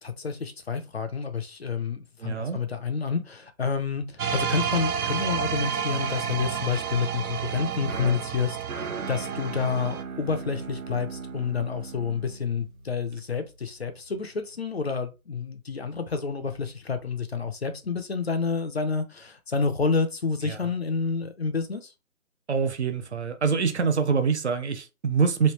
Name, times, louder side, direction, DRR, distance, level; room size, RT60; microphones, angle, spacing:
voice 1, 0.0-21.9, left 5 dB, 45° left, 0.5 m, -29 dB
voice 2, 2.2-2.6 20.4-20.7 22.5-25.5, right 5 dB, 50° right, 0.6 m, -25 dB
sound 1, 4.2-10.0, right 7 dB, 90° right, 0.6 m, -30 dB
sound 2, 7.5-13.6, right 4 dB, 70° right, 1.2 m, -39 dB
3.2 x 2.4 x 3.0 m
figure-of-eight pair, 155°, 43 cm